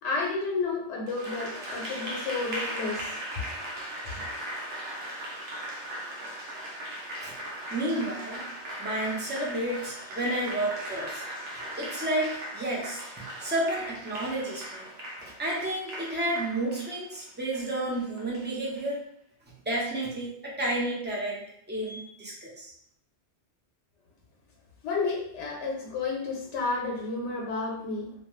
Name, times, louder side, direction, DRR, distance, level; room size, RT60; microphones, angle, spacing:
voice 1, 0.0-3.2 24.8-28.1, left 3 dB, 80° left, -1 dB, 0.9 m, -31 dB
Applause, 1.1-18.9, right 1 dB, 85° right, 0.9 m, -38 dB
voice 2, 7.7-8.4 8.8-11.2 11.8-14.9 15.4-19.0 19.7-21.4 21.7-22.7, right 1 dB, 15° right, -5 dB, 0.3 m, -31 dB
2.2 x 2.2 x 3.0 m, 0.70 s
omnidirectional pair, 1.2 m